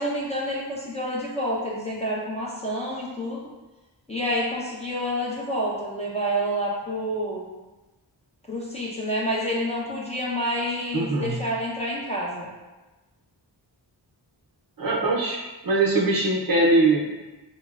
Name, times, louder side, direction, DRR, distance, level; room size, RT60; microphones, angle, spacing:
voice 1, 0.0-3.4 4.1-7.5 8.5-12.5, equal, 15° left, -5 dB, 0.5 m, -28 dB
voice 2, 10.9-11.3 14.8-17.0, right 2 dB, 50° right, -4 dB, 0.6 m, -22 dB
4.0 x 2.0 x 2.3 m, 1.1 s
wide cardioid pair, 85°, 44 cm